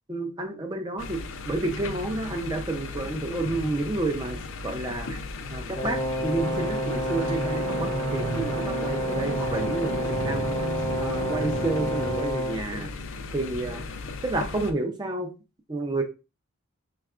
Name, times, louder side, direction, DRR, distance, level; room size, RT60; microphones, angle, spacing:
voice 1, 0.1-1.2 1.5-5.2 5.5-10.5 11.0-12.9 13.3-13.8 14.2-15.3 15.7-16.0, right 2 dB, 20° right, 5 dB, 0.5 m, -30 dB
sound 1, 1.0-14.7, left 3 dB, 65° left, 0.4 m, -37 dB
Brass instrument, 5.7-12.6, equal, 20° left, 0.7 m, -30 dB
sound 2, 6.4-12.2, right 3 dB, 70° right, 0.5 m, -33 dB
4.5 x 2.3 x 2.4 m, 0.30 s
head